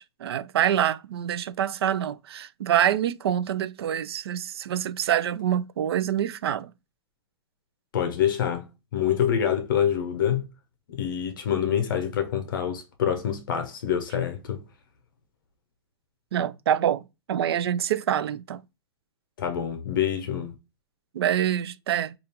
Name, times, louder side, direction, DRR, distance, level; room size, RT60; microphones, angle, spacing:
voice 1, 0.0-6.7 16.3-17.0 17.3-18.6 21.1-22.1, right 10 dB, 65° right, 0.4 m, -26 dB
voice 2, 7.9-10.4 10.9-14.6 19.4-20.5, left 9 dB, 50° left, 0.6 m, -26 dB
5.0 x 2.4 x 2.8 m
hypercardioid pair, 180°, 14 cm